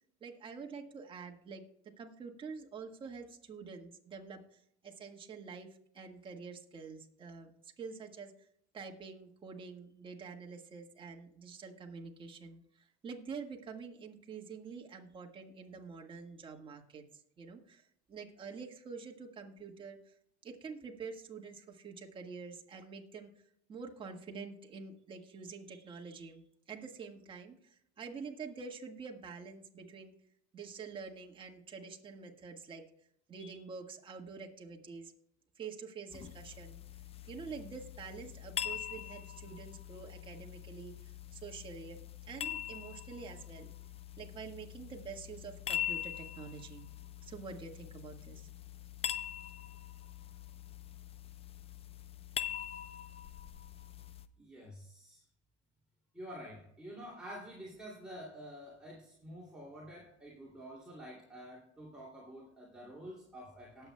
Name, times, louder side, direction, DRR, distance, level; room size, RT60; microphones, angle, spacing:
voice 1, 0.2-1.6 2.0-4.4 4.8-5.7 5.9-8.3 8.7-12.6 13.0-17.0 17.4-17.8 18.1-20.1 20.4-23.3 23.7-30.1 30.5-32.8 33.3-35.1 35.6-36.8 37.3-40.9 41.3-42.0 42.3-43.7 44.2-46.9 47.2-48.5, right 5 dB, 30° right, 2 dB, 1.7 m, -47 dB
sound 1, 36.1-54.3, left 10 dB, 30° left, 0.6 m, -43 dB
voice 2, 54.4-55.2 56.1-63.9, equal, 5° right, -5 dB, 2.7 m, -49 dB
19.0 x 8.0 x 2.3 m, 0.71 s
cardioid pair, 125°, 18 cm